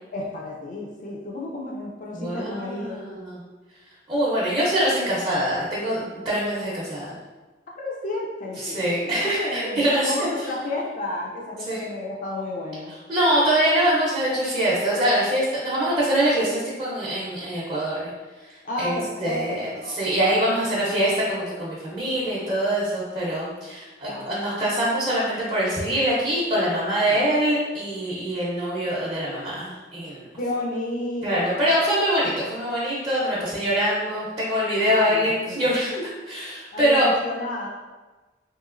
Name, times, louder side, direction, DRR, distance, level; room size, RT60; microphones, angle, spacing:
voice 1, 0.1-3.0 7.8-9.8 10.1-12.9 18.6-20.0 24.0-24.3 27.1-27.3 30.4-31.7 34.9-35.7 36.7-37.7, left 2 dB, 45° left, -2 dB, 0.3 m, -32 dB
voice 2, 2.1-3.4 4.1-7.1 8.6-10.3 11.7-11.8 13.1-18.1 18.8-30.3 31.2-37.1, equal, 25° right, -8 dB, 0.6 m, -24 dB
2.9 x 2.8 x 2.4 m, 1.3 s
head